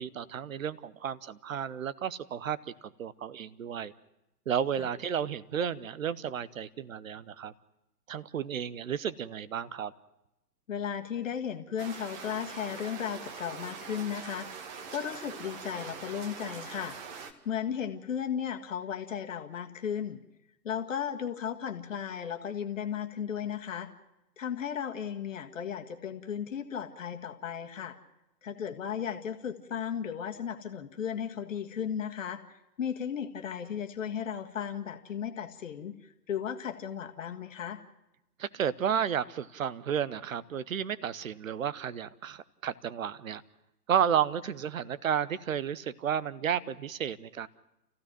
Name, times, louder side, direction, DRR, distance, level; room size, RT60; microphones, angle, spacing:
voice 1, 0.0-2.7 3.0-3.9 4.5-7.5 8.1-9.9 38.4-43.4 43.9-47.5, right 8 dB, 55° right, 18 dB, 0.9 m, -32 dB
voice 2, 10.7-14.6 14.9-17.0 17.5-20.2 20.6-23.9 24.4-28.0 28.4-32.4 32.8-37.8, left 8 dB, 50° left, 5 dB, 1.8 m, -35 dB
sound 1, 11.8-17.3, right 6 dB, 25° right, 1.5 m, -43 dB
29.0 x 15.5 x 6.0 m, 0.90 s
figure-of-eight pair, 125°, 50 cm